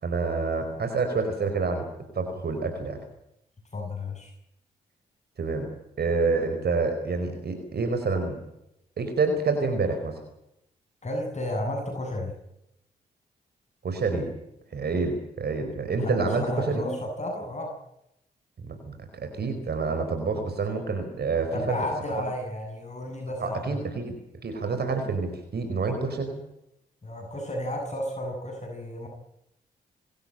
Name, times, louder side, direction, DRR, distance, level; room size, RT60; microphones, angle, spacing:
voice 1, 0.0-1.9 2.1-3.0 5.4-5.7 6.0-8.4 9.0-10.2 13.8-14.3 14.7-16.9 18.6-21.8 23.4-26.3, right 4 dB, 60° right, 6 dB, 4.7 m, -28 dB
voice 2, 3.7-4.3 11.0-12.3 16.0-17.7 21.5-23.8 27.0-29.1, left 1 dB, 35° left, 2 dB, 7.8 m, -32 dB
26.5 x 14.5 x 9.0 m, 0.81 s
hypercardioid pair, 40°, 19 cm